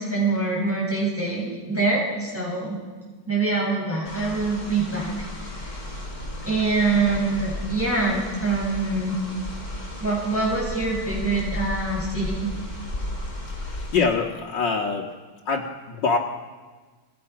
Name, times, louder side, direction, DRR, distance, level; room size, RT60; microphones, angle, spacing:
voice 1, 0.0-2.8 3.3-5.1 5.4-5.8 6.4-9.2 10.0-12.5, right 3 dB, 5° right, -4 dB, 6.7 m, -25 dB
sound 1, 4.0-14.0, left 1 dB, 45° left, 6.5 m, -34 dB
voice 2, 13.5-15.1 15.5-16.2, left 4 dB, 80° left, -2 dB, 2.4 m, -25 dB
28.0 x 27.5 x 6.0 m, 1.4 s
omnidirectional pair, 1.9 m